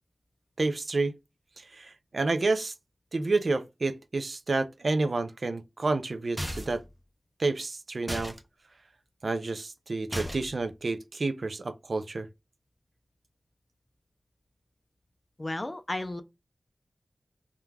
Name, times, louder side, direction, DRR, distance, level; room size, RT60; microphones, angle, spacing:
voice 1, 0.6-1.1 1.6-2.7 3.1-6.8 7.4-8.3 9.2-12.3, right 3 dB, 60° right, 0.4 m, -29 dB
sound 1, 6.4-6.9 8.1-8.4 10.1-10.6, equal, 10° right, 0.6 m, -35 dB
voice 2, 15.4-16.2, left 2 dB, 35° left, 0.4 m, -33 dB
2.4 x 2.2 x 3.2 m
wide cardioid pair, 60°, 0 cm